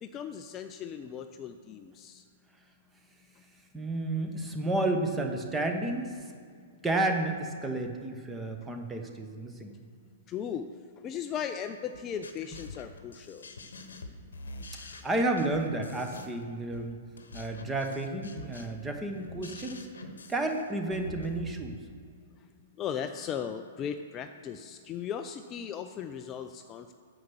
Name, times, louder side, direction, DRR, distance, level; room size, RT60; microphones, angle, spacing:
voice 1, 0.0-2.2 10.3-10.7 11.0-13.5 22.8-26.9, left 8 dB, 25° left, 7 dB, 0.4 m, -37 dB
voice 2, 3.7-6.3 6.8-9.7 14.8-17.0 17.3-19.9 20.3-21.8, right 2 dB, 10° right, 4 dB, 1.1 m, -31 dB
sound 1, 11.9-21.5, left 2 dB, 65° left, 1.0 m, -45 dB
9.4 x 6.9 x 6.2 m, 2.1 s
figure-of-eight pair, 110°, 0 cm